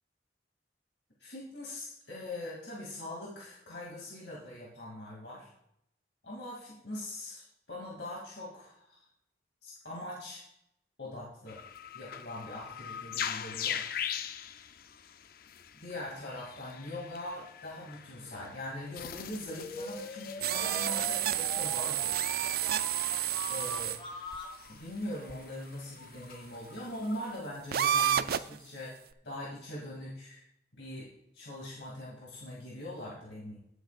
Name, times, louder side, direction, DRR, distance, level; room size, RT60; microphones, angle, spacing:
voice 1, 1.2-5.5 6.2-9.0 9.6-10.4 11.0-11.6 11.9-13.8 15.7-22.2 23.5-24.0 24.7-29.0 29.2-30.4 30.7-33.6, left 1 dB, 70° left, -4 dB, 2.5 m, -42 dB
sound 1, 11.5-27.4, left 9 dB, 55° left, 0.5 m, -43 dB
sound 2, 19.6-24.6, left 1 dB, 30° left, 1.7 m, -41 dB
sound 3, 20.4-24.0 24.3-24.4 25.3-25.4 27.7-28.6, right 11 dB, 55° right, 0.4 m, -30 dB
17.5 x 8.0 x 2.4 m, 0.77 s
head